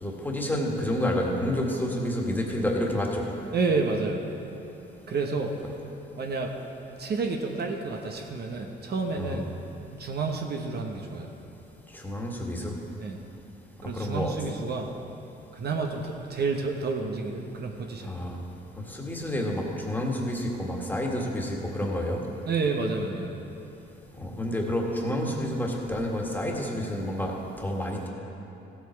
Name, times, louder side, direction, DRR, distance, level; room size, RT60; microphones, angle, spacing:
voice 1, 0.0-3.2 9.1-9.4 11.9-12.8 13.9-14.3 18.1-18.4 18.9-22.2 24.2-28.1, left 1 dB, 10° left, -1 dB, 1.9 m, -29 dB
voice 2, 3.5-4.2 5.1-5.5 6.2-6.5 7.0-9.5 10.0-11.3 13.0-13.2 13.8-14.9 15.5-18.2 22.5-23.3, right 4 dB, 55° right, 2 dB, 1.1 m, -29 dB
15.5 x 8.0 x 4.7 m, 3.0 s
cardioid pair, 90°, 20 cm